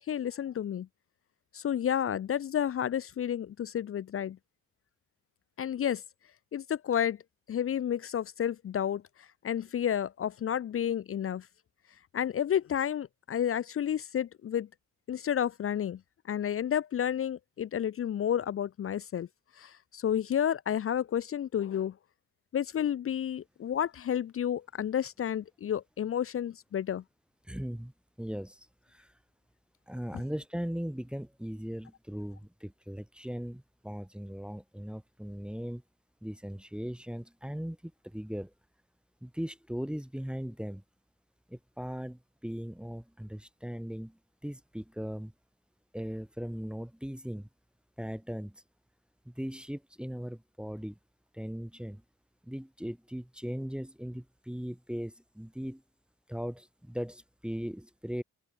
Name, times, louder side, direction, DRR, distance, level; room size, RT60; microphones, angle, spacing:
voice 1, 0.1-0.9 1.5-4.4 5.6-6.0 6.5-7.2 7.5-11.5 12.1-14.7 15.1-16.0 16.3-19.3 19.6-21.9 22.5-27.0, left 9 dB, 45° left, 0.5 m, -31 dB
voice 2, 27.4-27.9 28.2-29.1 29.9-35.8 36.2-38.5 39.2-40.8 41.5-45.3 45.9-47.5 48.0-48.6 49.2-51.0 51.3-52.0 52.4-55.8 56.3-58.2, equal, 5° right, 0.9 m, -38 dB
open air
cardioid pair, 105°, 30 cm